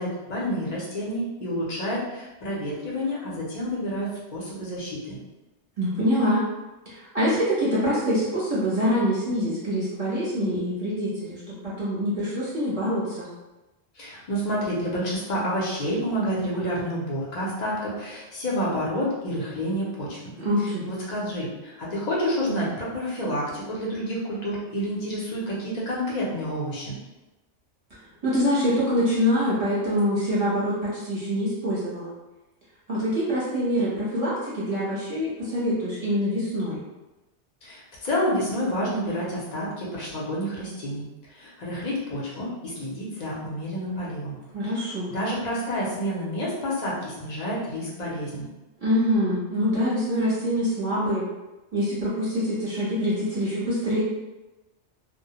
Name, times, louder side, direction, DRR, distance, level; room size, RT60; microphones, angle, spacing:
voice 1, 0.0-5.2 14.0-20.3 20.6-26.9 37.6-44.3 45.1-48.5, equal, 45° left, -5 dB, 0.7 m, -29 dB
voice 2, 5.8-6.4 6.9-13.3 20.4-20.8 28.2-32.1 32.9-36.8 44.5-45.1 48.8-51.3 51.7-54.0, equal, 35° right, -9 dB, 0.8 m, -25 dB
2.2 x 2.1 x 2.8 m, 1.1 s
omnidirectional pair, 1.2 m